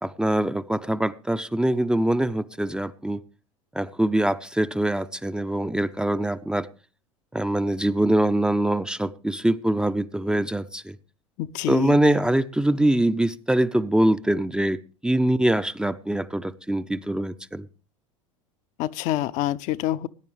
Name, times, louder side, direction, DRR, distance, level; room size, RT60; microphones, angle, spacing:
voice 1, 0.0-3.2 3.7-6.7 7.3-11.0 11.7-17.7, right 1 dB, 5° right, 0.6 m, -23 dB
voice 2, 11.4-12.0 18.8-20.1, left 14 dB, 50° left, 0.6 m, -26 dB
20.5 x 10.5 x 3.2 m
figure-of-eight pair, 80°, 17 cm